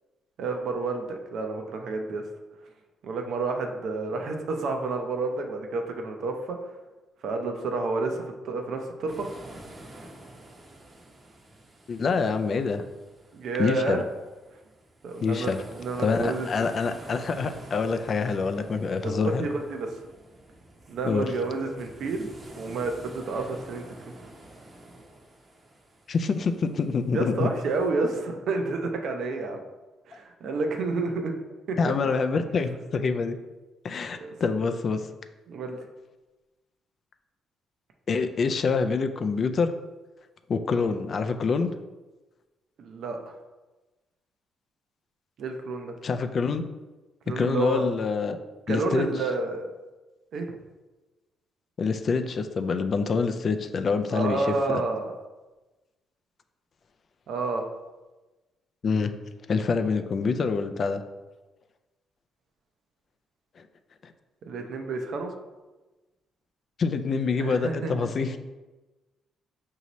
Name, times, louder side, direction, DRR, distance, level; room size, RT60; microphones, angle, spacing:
voice 1, 0.4-2.2 3.0-6.6 7.2-9.3 13.3-14.0 15.0-16.5 19.0-20.0 20.9-22.3 22.6-23.9 27.1-29.6 30.1-31.4 31.7-31.8 34.1-34.5 35.5-35.8 42.8-43.4 45.4-45.9 47.3-47.8 48.7-49.7 50.3-50.6 54.1-55.1 57.3-57.7 64.4-65.3 67.4-68.1, right 3 dB, 70° right, 4 dB, 0.5 m, -30 dB
sound 1, 9.1-27.9, right 1 dB, 30° right, 0.7 m, -48 dB
voice 2, 11.9-12.8 13.6-14.0 15.2-15.6 16.0-19.5 21.0-21.3 26.1-27.5 31.8-33.4 33.8-35.1 38.1-39.7 40.5-41.7 46.0-46.6 47.4-48.4 48.7-49.1 51.8-54.8 58.8-59.1 59.5-61.0 64.0-64.1 66.8-68.4, left 4 dB, 50° left, 8 dB, 0.3 m, -26 dB
5.0 x 2.7 x 3.0 m, 1.2 s
cardioid pair, 90°, 0 cm